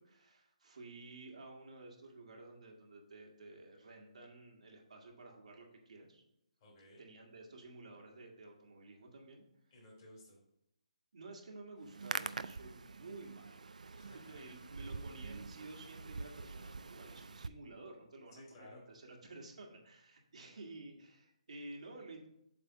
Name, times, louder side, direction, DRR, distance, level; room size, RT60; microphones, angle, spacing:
voice 1, 0.0-6.2 7.0-9.4 11.1-13.7 14.0-22.3, right 2 dB, 70° right, 0 dB, 1.8 m, -52 dB
voice 2, 6.6-7.0 9.7-10.4 13.9-14.7 18.3-18.8, left 1 dB, 30° left, -3 dB, 2.7 m, -58 dB
Hands, 11.8-17.5, right 4 dB, 90° right, 0.4 m, -45 dB
7.7 x 3.4 x 6.0 m, 0.78 s
hypercardioid pair, 165°, 4 cm